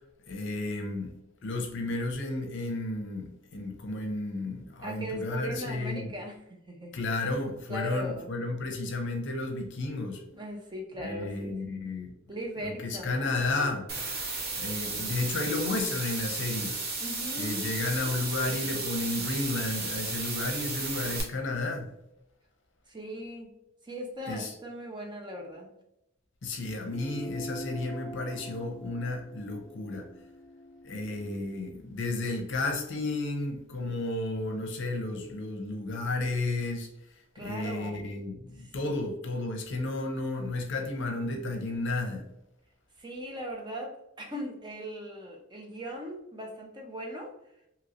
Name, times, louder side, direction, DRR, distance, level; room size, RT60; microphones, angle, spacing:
voice 1, 0.3-1.1 1.4-6.1 6.9-10.2 11.0-12.1 12.6-13.9 14.5-16.8 17.3-21.9 24.3-24.5 26.4-30.1 30.8-36.9 37.4-42.3, left 2 dB, 65° left, 0.6 m, -32 dB
voice 2, 4.8-6.9 7.7-8.3 10.3-11.6 12.3-13.3 17.0-17.7 22.9-23.5 23.8-25.7 37.3-38.0 38.6-39.0 43.0-47.3, equal, 20° right, 0.7 m, -39 dB
sound 1, 13.9-21.2, right 3 dB, 55° right, 0.8 m, -34 dB
sound 2, 26.9-31.7, left 1 dB, 10° left, 0.3 m, -43 dB
3.1 x 2.9 x 2.5 m
head